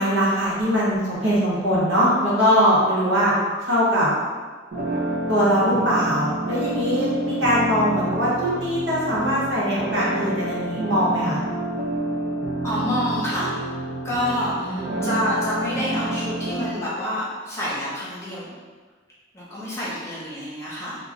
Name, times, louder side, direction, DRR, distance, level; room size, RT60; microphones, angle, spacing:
voice 1, 0.0-4.1 5.3-11.4 14.6-15.2, equal, 75° right, -7 dB, 0.9 m, -21 dB
sound 1, 4.7-16.7, right 1 dB, 50° right, 0.4 m, -28 dB
voice 2, 12.6-13.6 14.0-18.5 19.3-21.0, left 1 dB, 15° left, -9 dB, 0.7 m, -27 dB
2.3 x 2.1 x 3.6 m, 1.4 s
head